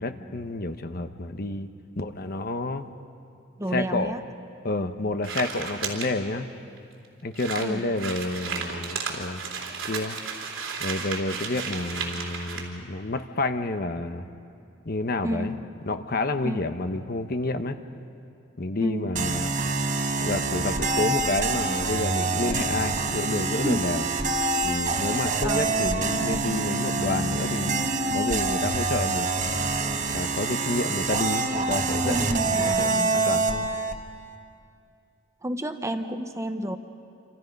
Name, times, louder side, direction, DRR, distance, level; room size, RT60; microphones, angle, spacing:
voice 1, 0.0-1.7 2.0-2.9 3.7-4.1 4.6-6.5 7.2-9.4 9.9-10.2 10.8-14.3 14.9-15.6 15.9-17.8 18.6-19.5 20.2-24.1 24.6-27.8 28.1-29.3 30.1-33.7, left 2 dB, 50° left, 8 dB, 0.9 m, -29 dB
voice 2, 3.6-4.2 7.6-7.8 15.2-15.5 16.4-16.6 18.8-19.1 23.6-23.9 25.4-25.7 32.0-33.2 35.4-36.8, equal, 15° right, 7 dB, 0.9 m, -30 dB
sound 1, 5.2-6.1 6.8-6.9 7.0-7.1 7.3-12.6, right 5 dB, 85° right, 3.4 m, -33 dB
sound 2, 19.1-34.0, right 3 dB, 40° right, 1.3 m, -26 dB
28.0 x 26.5 x 5.3 m, 2.5 s
head